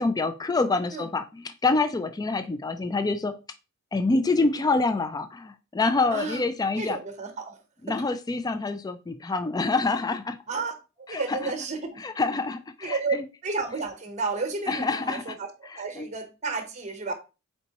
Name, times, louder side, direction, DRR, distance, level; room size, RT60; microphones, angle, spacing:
voice 1, 0.0-3.3 3.9-7.0 7.8-10.4 11.1-11.4 12.0-13.0 14.7-15.2 16.0-16.1, left 3 dB, 15° left, 0.3 m, -26 dB
voice 2, 6.1-6.5 6.8-7.6 7.9-8.0 10.5-12.0 12.8-17.1, right 4 dB, 30° right, 0.9 m, -32 dB
4.5 x 4.0 x 2.9 m
head